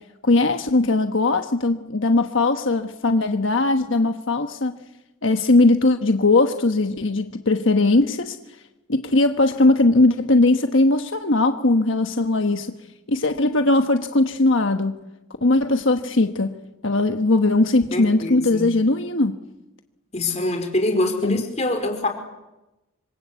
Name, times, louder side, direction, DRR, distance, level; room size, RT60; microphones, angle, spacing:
voice 1, 0.2-4.8 5.2-8.4 8.9-12.8 13.1-15.0 15.4-16.6 16.8-19.4 21.2-21.4, left 2 dB, 70° left, 6 dB, 1.3 m, -19 dB
voice 2, 17.9-18.7 20.1-22.1, left 2 dB, 35° left, 5 dB, 4.5 m, -24 dB
26.0 x 26.0 x 8.3 m, 0.99 s
head